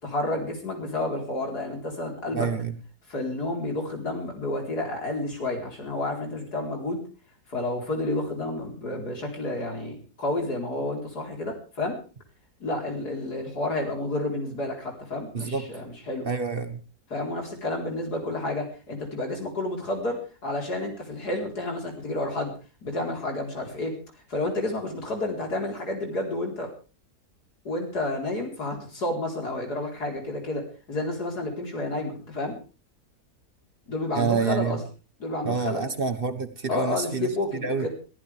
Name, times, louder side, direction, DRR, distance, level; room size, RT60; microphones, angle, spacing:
voice 1, 0.0-2.5 3.1-7.0 7.5-12.0 12.6-16.3 17.1-22.5 22.8-24.0 24.3-26.7 27.6-32.6 33.9-34.8 35.2-35.8 36.7-37.9, left 2 dB, 85° left, 1 dB, 4.9 m, -30 dB
voice 2, 2.3-2.7 15.3-15.7 16.2-16.8 34.1-34.8 35.4-37.3 37.6-37.9, right 5 dB, 35° right, 8 dB, 1.5 m, -27 dB
22.5 x 15.0 x 3.5 m, 0.36 s
omnidirectional pair, 1.6 m